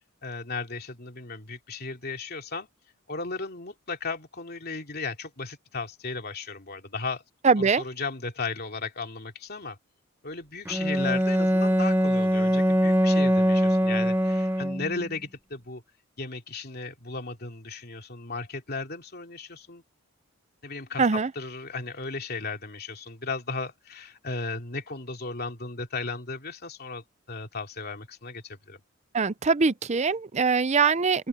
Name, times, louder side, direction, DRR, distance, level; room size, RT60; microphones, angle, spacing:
voice 1, 0.2-2.7 3.1-7.2 7.6-9.8 10.2-15.8 16.2-19.8 20.6-28.8, left 4 dB, 45° left, 2.9 m, -35 dB
voice 2, 7.4-7.8 21.0-21.3 29.1-31.3, right 5 dB, 30° right, 0.5 m, -22 dB
Bowed string instrument, 10.7-15.1, equal, 10° right, 1.1 m, -23 dB
open air
head